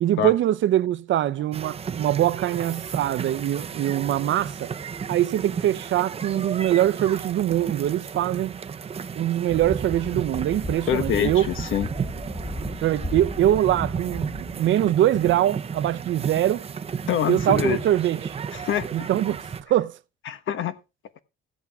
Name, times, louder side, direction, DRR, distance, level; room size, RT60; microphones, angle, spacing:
voice 1, 0.0-4.7 5.1-8.5 9.1-11.5 12.8-16.6 17.3-18.3 18.9-20.0, right 12 dB, 65° right, 0.7 m, -23 dB
sound 1, 1.5-19.6, right 6 dB, 30° right, 0.7 m, -34 dB
sound 2, 9.5-14.6, equal, 15° left, 1.6 m, -35 dB
voice 2, 10.9-11.9 17.1-17.8 18.5-19.1 20.3-20.8, left 9 dB, 70° left, 1.4 m, -25 dB
15.5 x 8.4 x 3.6 m
cardioid pair, 145°, 21 cm